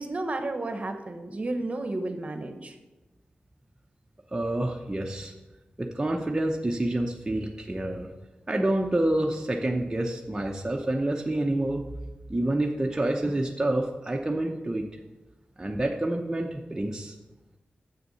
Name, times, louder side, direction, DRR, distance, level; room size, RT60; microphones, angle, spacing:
voice 1, 0.0-2.8, right 2 dB, 40° right, 6 dB, 1.0 m, -32 dB
voice 2, 4.3-5.3 5.8-8.1 8.5-11.8 12.3-14.8 15.6-17.1, right 1 dB, 20° right, 0 dB, 0.7 m, -28 dB
7.1 x 6.7 x 5.5 m, 1.1 s
wide cardioid pair, 85°, 3 cm